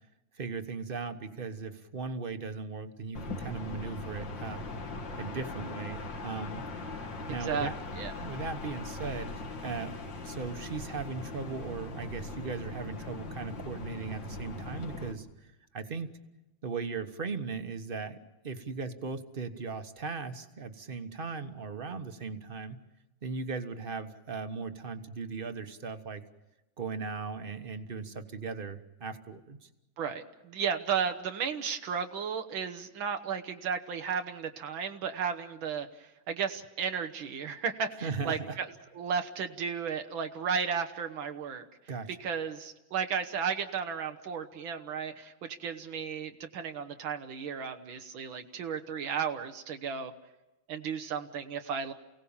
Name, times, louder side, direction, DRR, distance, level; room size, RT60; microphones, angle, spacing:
voice 1, 0.3-4.6 5.2-6.7 7.3-7.8 8.1-9.9 10.2-15.3 15.7-16.1 16.6-18.2 18.4-22.8 23.2-26.2 26.8-29.7 37.9-38.6 41.9-42.2, right 4 dB, 35° right, 8 dB, 1.2 m, -38 dB
sound 1, 3.1-15.1, left 2 dB, 70° left, 2.6 m, -40 dB
voice 2, 30.0-35.9 36.3-38.7 39.0-41.7 42.2-50.1 50.7-51.9, right 6 dB, 85° right, 7 dB, 1.9 m, -34 dB
29.0 x 17.5 x 7.2 m, 1.0 s
omnidirectional pair, 2.1 m